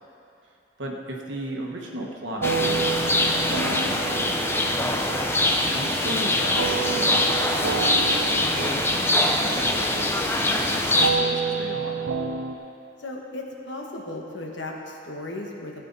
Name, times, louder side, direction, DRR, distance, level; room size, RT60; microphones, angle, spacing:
voice 1, 0.4-5.1 5.4-8.0 8.5-12.1, right 1 dB, 70° right, -1 dB, 1.4 m, -36 dB
sound 1, 2.4-11.1, left 1 dB, 10° left, 0.5 m, -23 dB
sound 2, 2.4-12.6, right 5 dB, 90° right, 0.6 m, -30 dB
voice 2, 13.0-15.8, left 2 dB, 65° left, 0 dB, 1.3 m, -35 dB
14.5 x 8.6 x 4.1 m, 2.6 s
head